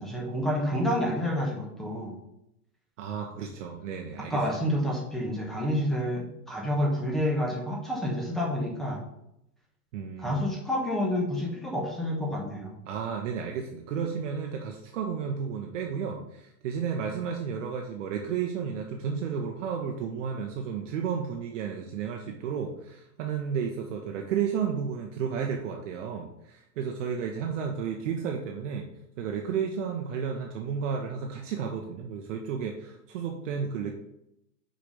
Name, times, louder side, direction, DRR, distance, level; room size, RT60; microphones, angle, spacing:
voice 1, 0.0-2.1 4.3-9.0 10.2-12.8, equal, ahead, -2 dB, 1.1 m, -29 dB
voice 2, 3.0-4.6 9.9-10.4 12.9-28.9 29.2-33.9, right 7 dB, 50° right, 2 dB, 0.9 m, -32 dB
5.1 x 4.8 x 5.2 m, 0.82 s
hypercardioid pair, 150°, 47 cm